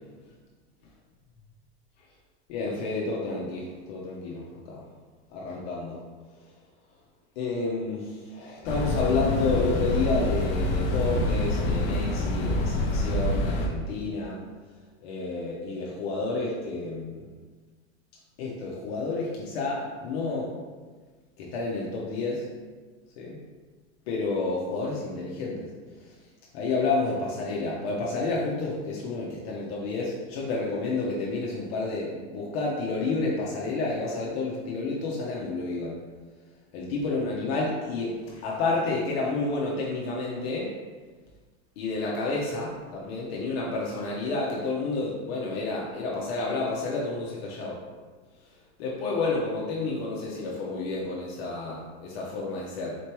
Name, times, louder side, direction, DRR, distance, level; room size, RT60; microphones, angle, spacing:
voice 1, 2.5-4.8 5.3-6.0 7.4-14.4 15.0-17.2 18.4-20.5 21.4-22.4 23.2-23.4 24.1-25.7 26.5-36.0 36.7-40.7 41.8-47.8 48.8-53.0, left 3 dB, 60° left, -3 dB, 0.9 m, -30 dB
sound 1, 8.6-13.7, left 2 dB, 35° left, 0.6 m, -26 dB
4.2 x 3.2 x 3.0 m, 1.4 s
supercardioid pair, 145°, 34 cm